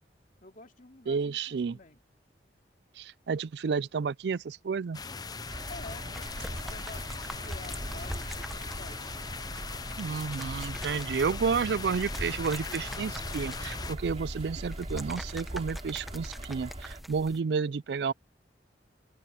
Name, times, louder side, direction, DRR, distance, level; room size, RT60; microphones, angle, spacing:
voice 1, 0.4-2.0 5.7-9.0 17.2-17.4, left 2 dB, 50° left, 2.8 m, -49 dB
voice 2, 1.1-1.8 3.0-5.0 10.0-18.1, right 5 dB, 70° right, 0.4 m, -31 dB
sound 1, 4.9-14.0, left 4 dB, 25° left, 0.5 m, -40 dB
sound 2, 5.5-17.0, right 1 dB, 35° right, 3.1 m, -41 dB
sound 3, 6.1-17.4, equal, ahead, 1.1 m, -45 dB
open air
head